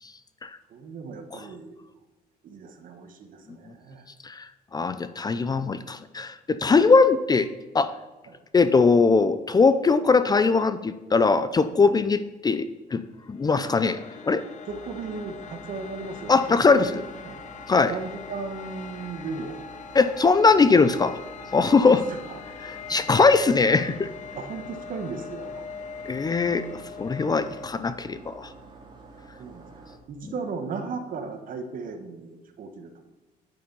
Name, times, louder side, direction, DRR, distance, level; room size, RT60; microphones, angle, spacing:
voice 1, 0.7-1.8 2.4-4.1 8.3-8.4 14.7-17.4 17.9-19.6 21.8-22.2 24.3-25.7 29.4-29.8 30.1-33.0, right 4 dB, 55° right, 7 dB, 1.4 m, -36 dB
voice 2, 4.2-7.5 7.7-7.9 8.5-13.0 13.3-14.4 16.3-17.0 17.7-17.9 19.9-21.2 21.5-22.0 22.9-24.1 26.1-28.5, left 4 dB, 25° left, 12 dB, 0.5 m, -21 dB
sound 1, 13.1-27.7, left 7 dB, 45° left, 0.9 m, -42 dB
sound 2, 14.7-30.0, right 3 dB, 25° right, 2.3 m, -48 dB
9.1 x 6.8 x 5.5 m, 1.2 s
cardioid pair, 110°, 17 cm